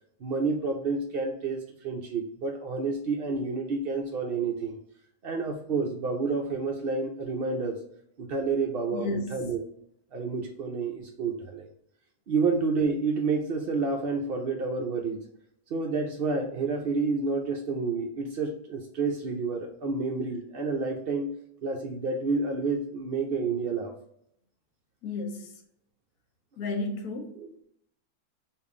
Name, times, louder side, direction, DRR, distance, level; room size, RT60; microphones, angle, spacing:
voice 1, 0.2-4.8 5.2-7.8 8.2-9.6 10.1-11.7 12.3-15.2 15.7-21.3 21.6-23.9 27.4-27.5, right 4 dB, 70° right, 1 dB, 0.5 m, -29 dB
voice 2, 8.9-9.4 25.0-25.5 26.6-27.4, left 2 dB, 80° left, 4 dB, 1.2 m, -33 dB
3.6 x 2.4 x 3.6 m, 0.70 s
omnidirectional pair, 1.6 m